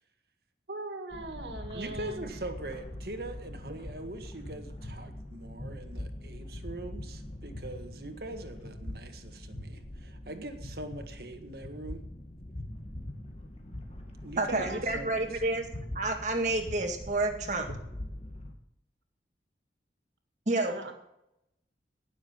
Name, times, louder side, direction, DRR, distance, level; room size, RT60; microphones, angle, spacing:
voice 1, 0.7-2.3 14.6-14.8 20.7-20.9, right 2 dB, 85° right, 5 dB, 2.2 m, -40 dB
sound 1, 1.1-18.5, left 1 dB, 35° left, 1.9 m, -43 dB
voice 2, 1.7-12.0 14.2-15.3, right 2 dB, 60° right, 6 dB, 1.7 m, -42 dB
voice 3, 14.4-15.6 15.9-17.7 20.5-20.9, right 2 dB, 45° right, 4 dB, 2.1 m, -29 dB
17.5 x 7.3 x 5.8 m, 0.82 s
head